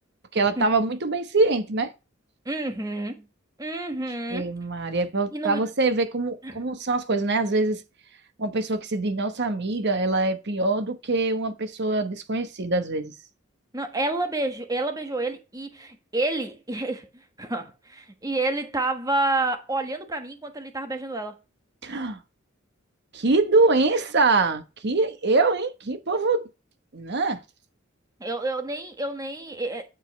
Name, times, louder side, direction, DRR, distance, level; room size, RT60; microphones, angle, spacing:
voice 1, 0.3-1.9 4.3-7.8 8.4-13.1 21.8-22.2 23.1-26.4 26.9-27.4, right 3 dB, 60° right, 1.1 m, -24 dB
voice 2, 2.4-3.3 3.6-4.5 5.3-5.7 6.4-6.6 13.7-21.4 28.2-29.9, right 2 dB, 20° right, 1.4 m, -29 dB
8.4 x 7.4 x 3.2 m
head